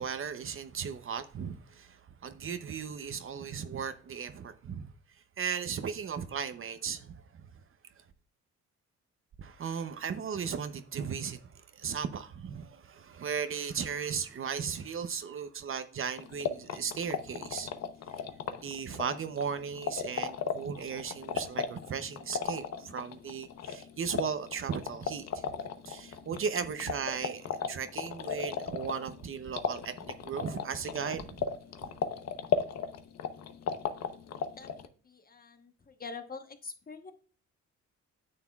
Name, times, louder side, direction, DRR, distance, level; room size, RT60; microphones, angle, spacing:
voice 1, 0.0-4.9 5.4-7.5 9.4-17.7 18.6-25.4 25.9-31.5 31.8-31.9, right 6 dB, 45° right, 0.7 m, -36 dB
sound 1, 16.2-34.9, left 7 dB, 60° left, 0.9 m, -37 dB
voice 2, 35.0-37.1, left 4 dB, 30° left, 1.1 m, -45 dB
9.6 x 6.7 x 2.3 m
cardioid pair, 90°, 30 cm